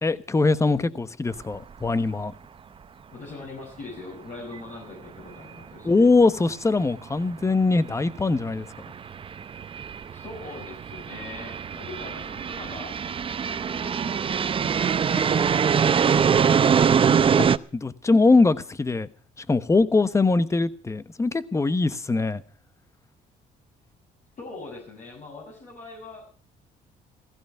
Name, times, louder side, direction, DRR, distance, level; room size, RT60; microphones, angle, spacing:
voice 1, 0.0-2.3 5.8-8.7 17.4-19.1 19.4-22.4, left 3 dB, 15° left, 1.1 m, -22 dB
sound 1, 1.4-1.6 1.9-2.0 6.0-6.1 7.2-7.3 8.0-17.6, right 7 dB, 30° right, 0.7 m, -23 dB
voice 2, 3.1-6.1 10.1-13.0 13.6-17.0 24.4-26.3, left 3 dB, 45° left, 6.7 m, -41 dB
15.5 x 15.5 x 5.7 m
cardioid pair, 110°, 17 cm